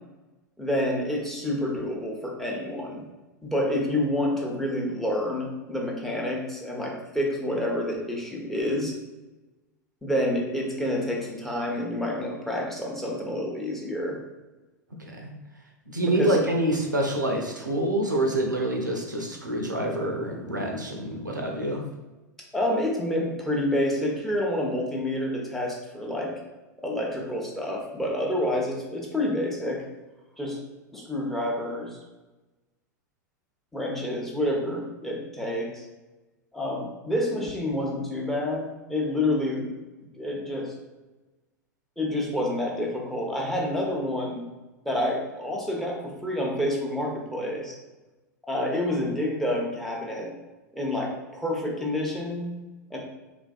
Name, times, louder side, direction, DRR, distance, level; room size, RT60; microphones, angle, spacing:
voice 1, 0.6-3.0 3.4-8.9 10.0-14.2 16.0-16.4 22.5-26.3 26.8-29.8 30.4-30.6 30.9-32.0 33.7-35.8 36.5-39.7 40.2-40.7 42.0-44.4 44.8-47.8 48.5-50.3 50.7-52.5 52.9-53.0, left 1 dB, 5° left, -2 dB, 0.6 m, -28 dB
voice 2, 15.9-21.8, right 1 dB, 85° right, 1 dB, 0.5 m, -26 dB
3.1 x 2.4 x 2.3 m, 1.1 s
figure-of-eight pair, 90°, 10 cm